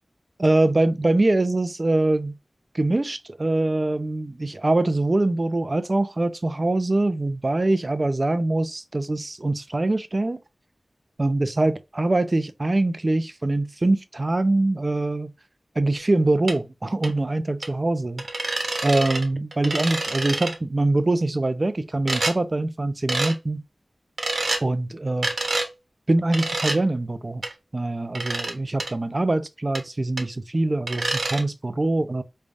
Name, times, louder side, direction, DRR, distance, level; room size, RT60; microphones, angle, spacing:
voice 1, 0.4-2.4 2.7-10.4 11.2-15.3 15.8-18.5 18.8-23.6 24.6-25.5 26.1-27.4 27.7-32.2, right 2 dB, 40° right, 0.6 m, -23 dB
sound 1, 16.5-16.6 17.0-17.1 17.6-17.7 18.2-19.2 19.5-20.6 22.1-22.4 23.1-23.3 24.2-24.6 25.2-25.7 26.3-26.8 27.4-27.5 28.1-28.5 28.8-28.9 29.7-29.8 30.2-30.3 30.9-31.4, right 2 dB, 75° right, 1.1 m, -27 dB
4.9 x 3.3 x 2.6 m
wide cardioid pair, 85°, 0 cm